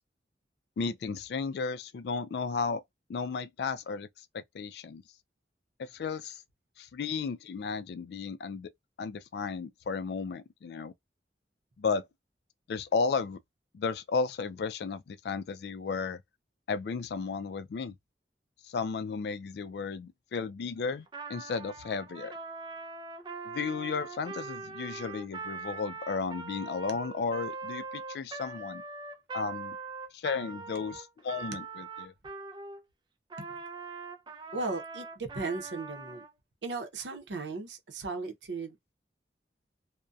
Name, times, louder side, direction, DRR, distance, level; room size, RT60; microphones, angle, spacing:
voice 1, 0.8-2.8 3.1-4.1 4.3-5.0 5.8-6.4 6.8-8.7 9.0-10.9 11.8-12.1 12.7-13.4 13.7-16.2 16.7-17.9 18.6-22.3 23.4-28.8 29.3-29.8 30.1-32.1, left 5 dB, 65° left, 0.3 m, -34 dB
Trumpet, 21.1-32.8 33.3-36.3, right 4 dB, 25° right, 0.4 m, -42 dB
voice 2, 34.5-36.2 36.6-38.9, right 3 dB, 80° right, 0.6 m, -36 dB
2.5 x 2.1 x 2.3 m
head